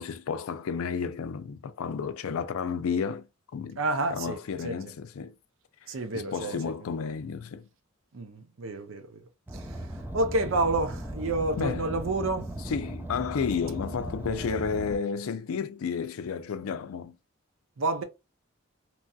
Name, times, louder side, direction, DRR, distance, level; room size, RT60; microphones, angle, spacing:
voice 1, 0.0-3.3 3.5-3.8 4.1-5.3 6.1-7.7 11.6-11.9 12.7-17.1, left 6 dB, 90° left, 0.4 m, -32 dB
voice 2, 3.8-4.8 5.9-6.6 8.1-9.2 9.5-12.5 17.8-18.0, right 2 dB, 70° right, 0.6 m, -29 dB
Car, 9.5-15.0, right 1 dB, 10° right, 0.4 m, -37 dB
2.9 x 2.7 x 2.3 m
head